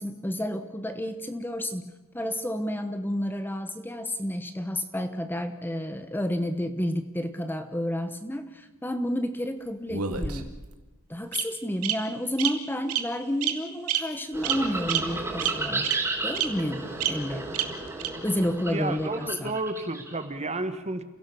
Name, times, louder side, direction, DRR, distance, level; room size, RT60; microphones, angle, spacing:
voice 1, 0.0-10.5 11.1-15.9 16.2-17.5 18.2-19.6, equal, 10° left, 8 dB, 1.0 m, -30 dB
Bird vocalization bird call bird song, 9.9-10.7 11.3-11.4 11.8-11.9 12.4-12.5 12.9-13.0 13.4-13.5 13.9-14.0 14.4-14.6 14.9-15.0 15.4-15.5 15.8-15.9 16.3-16.4 17.0-17.1 17.5-17.6 18.0-18.1, right 10 dB, 90° right, 2.2 m, -26 dB
sound 1, 14.3-20.2, right 2 dB, 10° right, 4.4 m, -33 dB
voice 2, 18.7-21.0, right 2 dB, 30° right, 10 dB, 1.5 m, -31 dB
29.0 x 16.5 x 6.9 m, 1.1 s
head